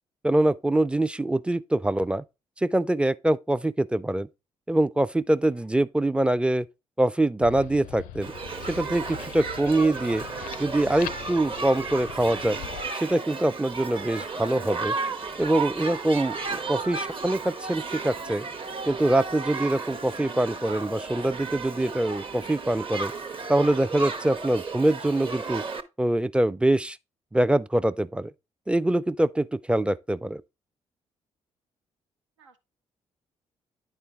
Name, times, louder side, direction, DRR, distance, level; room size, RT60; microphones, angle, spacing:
voice 1, 0.2-2.2 2.6-4.3 4.7-6.7 7.0-8.3 8.7-10.2 10.6-12.6 12.9-14.9 15.4-18.5 18.9-23.1 23.5-25.6 26.0-27.0 27.3-28.3 28.7-30.4, right 1 dB, 5° right, 0.4 m, -24 dB
sound 1, 7.4-12.9, left 12 dB, 65° left, 0.4 m, -41 dB
Shout / Human group actions, 8.2-25.8, right 4 dB, 35° right, 0.8 m, -34 dB
voice 2, 14.2-14.7 32.4-32.6, right 3 dB, 90° right, 0.7 m, -47 dB
9.7 x 4.4 x 3.5 m
hypercardioid pair, 40°, 15 cm